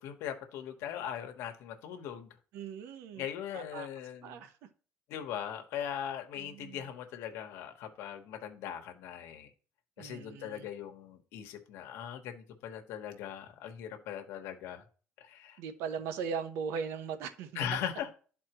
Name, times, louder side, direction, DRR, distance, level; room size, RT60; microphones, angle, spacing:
voice 1, 0.0-2.3 3.1-4.4 5.1-9.5 10.0-14.9 15.2-15.6 17.5-18.1, left 9 dB, 75° left, 1.2 m, -40 dB
voice 2, 2.5-3.2 3.5-3.9 4.2-4.5 6.4-6.9 10.0-10.6 15.6-17.5, right 6 dB, 85° right, 0.9 m, -39 dB
12.0 x 4.2 x 3.0 m
cardioid pair, 175°, 5 cm